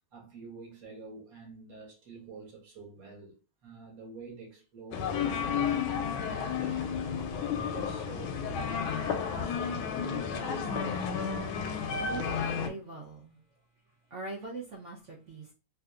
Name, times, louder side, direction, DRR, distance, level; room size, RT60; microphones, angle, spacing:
voice 1, 0.1-7.0 7.5-9.0, right 4 dB, 50° right, 1.5 m, -48 dB
sound 1, 4.9-12.7, left 6 dB, 85° left, 1.4 m, -32 dB
voice 2, 12.0-13.4 14.1-15.5, right 3 dB, 80° right, 0.6 m, -41 dB
3.5 x 2.7 x 2.4 m
omnidirectional pair, 2.2 m